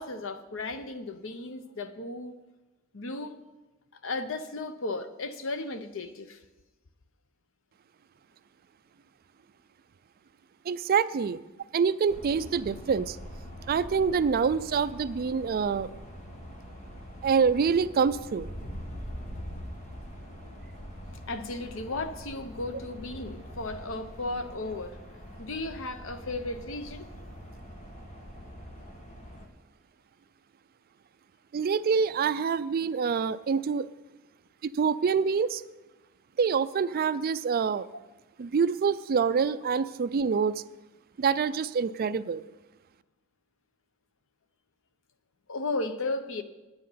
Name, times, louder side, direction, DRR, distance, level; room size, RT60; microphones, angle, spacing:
voice 1, 0.0-2.4 2.9-3.4 4.0-6.4 21.3-25.0 25.4-27.1 45.5-46.4, left 2 dB, 65° left, 10 dB, 0.8 m, -35 dB
voice 2, 10.7-11.4 11.7-13.2 13.7-15.9 17.2-18.5 31.5-33.9 34.6-35.6 36.4-37.9 38.4-40.6 41.2-42.4, right 6 dB, 45° right, 15 dB, 0.4 m, -26 dB
sound 1, 12.1-29.5, equal, 35° left, 1.4 m, -43 dB
9.7 x 9.2 x 5.7 m, 1.1 s
head